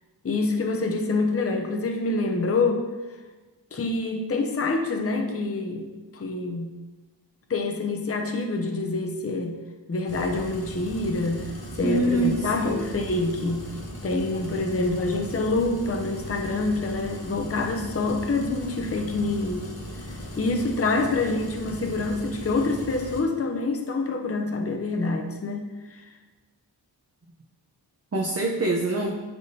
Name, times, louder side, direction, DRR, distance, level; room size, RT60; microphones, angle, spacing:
voice 1, 0.2-2.8 3.7-5.9 6.1-6.8 7.5-9.6 9.9-13.7 14.0-19.7 20.1-26.1, left 3 dB, 35° left, 3 dB, 0.6 m, -26 dB
sound 1, 10.1-23.2, equal, 60° left, 1.6 m, -38 dB
voice 2, 11.8-12.9 28.1-29.1, right 2 dB, 35° right, -1 dB, 0.7 m, -25 dB
10.5 x 3.5 x 2.7 m, 1.2 s
wide cardioid pair, 75°, 42 cm